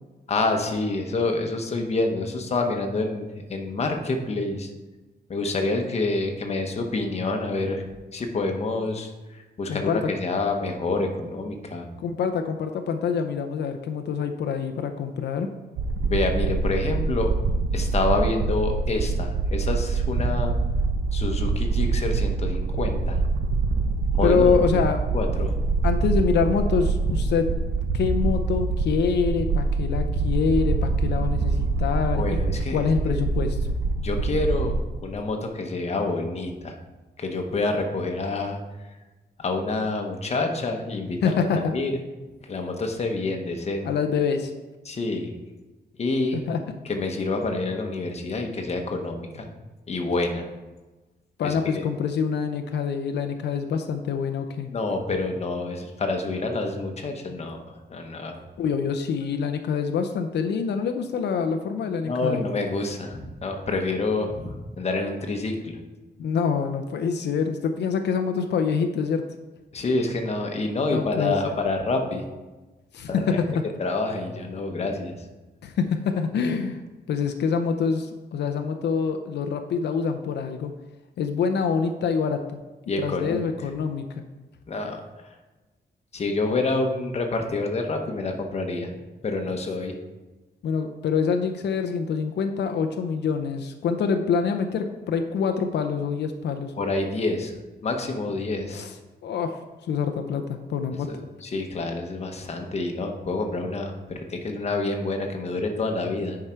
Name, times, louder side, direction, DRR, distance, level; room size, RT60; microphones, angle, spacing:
voice 1, 0.3-4.7 5.3-7.8 8.1-11.9 16.0-17.4 17.7-20.5 21.1-23.2 24.1-24.9 25.1-25.8 32.1-33.2 34.0-34.7 35.0-36.8 37.2-38.6 39.4-41.9 42.4-43.9 44.8-45.3 46.0-46.4 46.9-49.5 49.9-50.5 51.4-51.9 54.7-58.4 62.0-65.8 69.7-72.2 73.1-73.4 73.8-75.1 82.9-83.5 84.7-85.0 86.1-90.0 96.8-97.5 97.8-98.8 101.1-106.4, left 3 dB, 40° left, 3 dB, 1.0 m, -27 dB
voice 2, 9.7-10.0 12.0-15.5 24.2-25.0 25.8-27.5 27.9-32.4 32.7-33.6 41.2-41.7 43.8-44.5 46.5-46.6 51.4-54.7 58.6-62.4 66.2-69.3 70.9-71.5 72.9-73.6 75.6-76.8 77.1-80.7 81.2-82.6 83.0-84.2 90.6-96.7 98.7-98.9 99.2-99.6 99.9-101.1, left 6 dB, 85° left, 6 dB, 0.6 m, -25 dB
sound 1, 15.8-34.8, right 3 dB, 80° right, 0.8 m, -25 dB
9.9 x 4.8 x 4.4 m, 1.2 s
wide cardioid pair, 150°, 17 cm